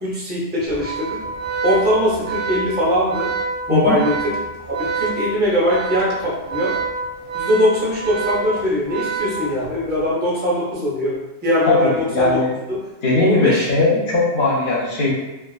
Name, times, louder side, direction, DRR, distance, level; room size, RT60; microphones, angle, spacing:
voice 1, 0.0-1.2 1.6-3.3 3.7-4.3 4.8-6.7 7.3-12.4 13.2-13.7, left 1 dB, 15° right, -6 dB, 0.4 m, -21 dB
Organ, 0.7-9.9, right 4 dB, 55° right, 0.7 m, -27 dB
voice 2, 11.7-12.5 13.0-15.1, left 2 dB, 60° left, -4 dB, 0.6 m, -18 dB
2.4 x 2.3 x 2.3 m, 1.0 s
omnidirectional pair, 1.2 m